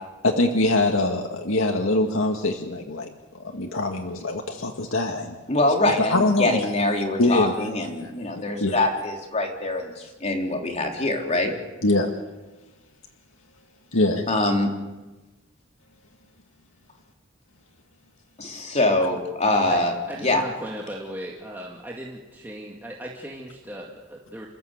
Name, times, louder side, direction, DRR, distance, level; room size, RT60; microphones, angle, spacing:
voice 1, 0.2-3.1 3.4-5.3 5.9-6.6 7.2-7.6 8.6-8.8 11.8-12.1 13.9-14.3, left 2 dB, 90° left, 2 dB, 2.0 m, -23 dB
voice 2, 5.5-11.5 14.3-14.7 18.4-19.9 20.2-20.4, left 2 dB, 35° left, 2 dB, 3.6 m, -24 dB
voice 3, 19.7-24.5, right 1 dB, 10° right, -2 dB, 2.3 m, -37 dB
28.0 x 14.5 x 8.1 m, 1.1 s
head